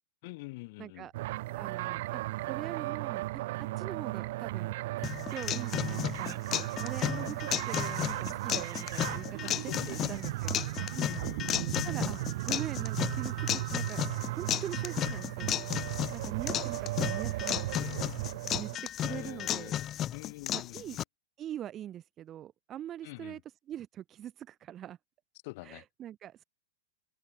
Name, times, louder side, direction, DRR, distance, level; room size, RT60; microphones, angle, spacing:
voice 1, 0.2-1.1 9.4-10.0 11.0-11.9 19.1-21.0 23.0-23.4 25.4-25.8, left 24 dB, 55° left, 3.7 m, -46 dB
voice 2, 0.8-1.1 1.6-2.2 2.5-3.3 3.6-4.8 5.3-6.4 6.8-10.6 10.9-11.1 11.7-12.2 12.4-15.6 16.1-17.9 18.5-19.8 20.5-21.0 21.4-23.4 23.7-25.0 25.6-26.4, right 11 dB, 30° right, 0.6 m, -42 dB
sound 1, 1.1-18.8, right 18 dB, 60° right, 1.0 m, -36 dB
sound 2, 5.0-21.0, left 11 dB, 30° left, 0.6 m, -34 dB
open air
hypercardioid pair, 135°, 0 cm